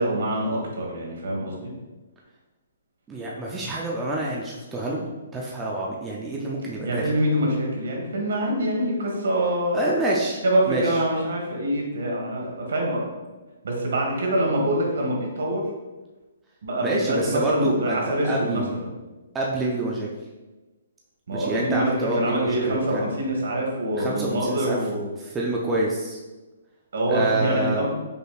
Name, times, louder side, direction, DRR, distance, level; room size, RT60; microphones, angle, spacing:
voice 1, 0.0-1.7 6.8-9.8 10.4-13.0 13.6-15.6 16.6-18.8 21.3-25.1 26.9-27.9, right 1 dB, 70° right, -1 dB, 1.5 m, -25 dB
voice 2, 3.1-7.1 9.7-10.4 10.7-11.0 16.8-18.7 19.3-20.1 21.3-23.0 23.9-24.8 25.2-26.2 27.1-27.9, right 1 dB, 10° right, -4 dB, 0.4 m, -27 dB
5.3 x 4.1 x 2.3 m, 1.2 s
hypercardioid pair, 165°, 0 cm